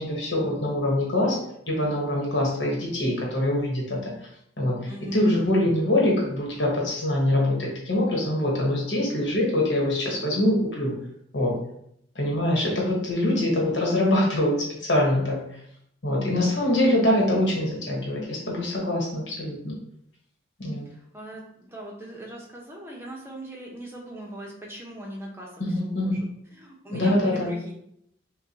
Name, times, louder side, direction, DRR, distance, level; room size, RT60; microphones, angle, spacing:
voice 1, 0.0-1.4 1.7-4.3 4.6-10.9 11.3-11.6 12.1-15.6 16.0-19.7 20.6-20.9 25.6-26.2 26.9-27.5, left 1 dB, 65° left, -3 dB, 1.3 m, -24 dB
voice 2, 4.9-5.5 20.9-26.3 26.6-27.7, right 1 dB, 10° right, -2 dB, 0.8 m, -40 dB
6.4 x 2.3 x 2.9 m, 0.74 s
head